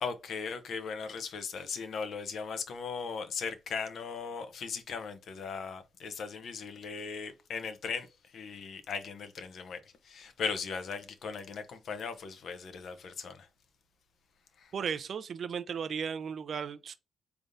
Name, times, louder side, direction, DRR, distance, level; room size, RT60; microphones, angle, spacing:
voice 1, 0.0-13.5 14.6-14.7, left 5 dB, 70° left, 0.7 m, -38 dB
voice 2, 14.7-17.0, right 7 dB, 60° right, 0.4 m, -35 dB
3.7 x 3.3 x 2.6 m
cardioid pair, 80°, 0 cm